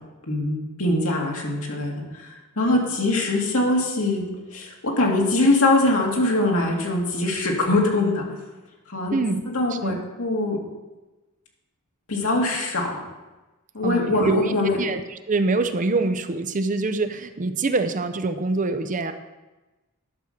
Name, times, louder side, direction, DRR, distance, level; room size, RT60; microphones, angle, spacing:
voice 1, 0.2-4.2 4.5-8.2 8.9-9.2 9.5-10.6 12.1-12.9 13.7-14.8, left 2 dB, 65° left, -1 dB, 2.4 m, -22 dB
voice 2, 9.1-9.4 9.7-10.0 13.8-19.1, right 3 dB, 35° right, 9 dB, 0.6 m, -25 dB
11.5 x 6.2 x 6.6 m, 1.1 s
head